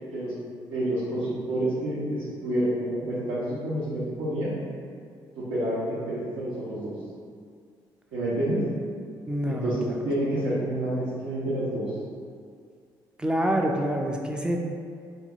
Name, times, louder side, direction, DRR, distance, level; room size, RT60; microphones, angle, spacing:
voice 1, 0.7-4.5 5.4-6.9 8.1-8.6 9.5-11.9, right 1 dB, 80° right, -10 dB, 0.6 m, -28 dB
voice 2, 9.3-10.0 13.2-14.6, right 1 dB, 10° right, 1 dB, 0.4 m, -26 dB
2.8 x 2.3 x 2.7 m, 2.2 s
supercardioid pair, 65°, 9 cm